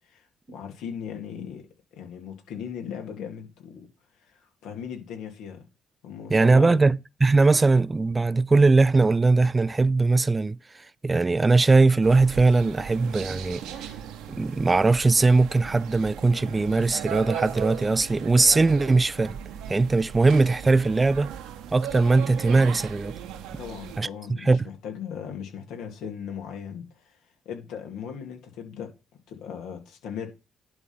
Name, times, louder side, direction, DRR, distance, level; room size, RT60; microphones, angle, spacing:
voice 1, 0.5-1.6 2.0-3.9 4.3-5.6 6.0-6.8 23.6-27.2 27.4-28.9 29.3-30.3, left 7 dB, 75° left, 2.5 m, -38 dB
voice 2, 6.3-13.6 14.3-19.4 19.7-21.3 21.7-23.2 24.0-24.1 24.4-24.7, right 3 dB, 25° right, 0.4 m, -20 dB
sound 1, 12.0-24.0, right 9 dB, 75° right, 1.1 m, -37 dB
11.0 x 3.7 x 5.4 m
hypercardioid pair, 50°, 0 cm